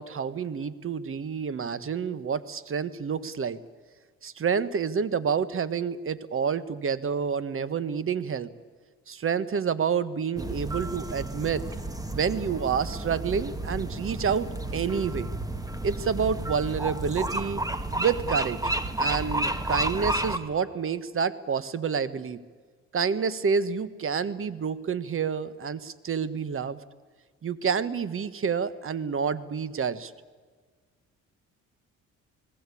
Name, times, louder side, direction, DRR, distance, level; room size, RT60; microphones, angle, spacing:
voice 1, 0.0-3.6 4.2-8.5 9.1-11.6 12.1-15.3 15.8-17.6 18.0-18.6 19.0-22.4 22.9-26.8 27.4-30.1, right 6 dB, 45° right, 15 dB, 1.4 m, -28 dB
sound 1, 10.4-20.4, right 1 dB, 10° right, 1.9 m, -31 dB
29.0 x 19.0 x 8.6 m, 1.5 s
cardioid pair, 90°, 30 cm